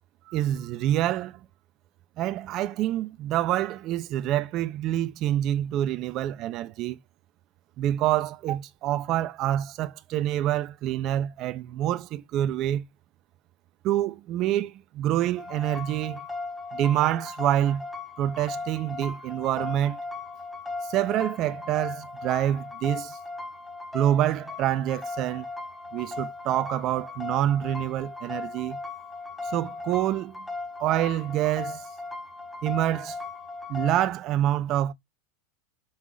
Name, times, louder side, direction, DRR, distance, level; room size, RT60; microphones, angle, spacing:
voice 1, 0.3-1.4 2.2-7.0 7.8-12.9 13.8-16.2 16.7-17.9 18.2-20.0 20.9-23.2 23.9-25.5 25.9-28.8 29.5-30.4 30.8-31.9 32.6-33.2 33.7-34.9, right 12 dB, 40° right, 0.7 m, -26 dB
sound 1, 15.4-34.1, left 3 dB, 5° left, 1.1 m, -37 dB
5.7 x 3.5 x 4.8 m
supercardioid pair, 145°, 0 cm